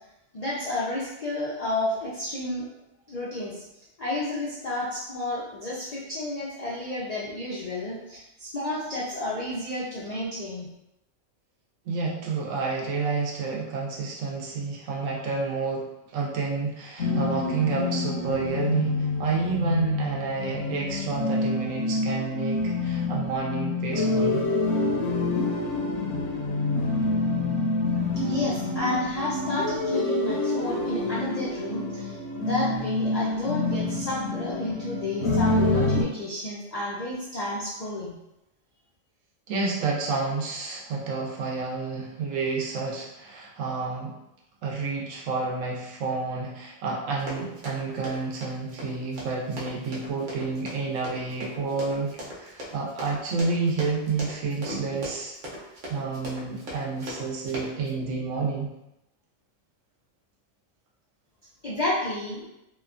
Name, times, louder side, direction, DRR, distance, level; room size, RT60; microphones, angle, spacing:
voice 1, 0.3-2.7 3.1-3.6 4.0-10.7 28.2-38.2 61.6-62.4, left 1 dB, 85° left, -6 dB, 0.3 m, -31 dB
voice 2, 11.9-15.9 16.1-24.5 39.5-44.1 44.6-55.3 55.9-58.7, right 4 dB, 80° right, -2 dB, 1.0 m, -29 dB
sound 1, 17.0-36.0, left 2 dB, 65° left, 0.8 m, -27 dB
Run, 47.2-57.9, equal, 45° right, 0.7 m, -39 dB
2.9 x 2.1 x 2.4 m, 0.87 s
omnidirectional pair, 1.3 m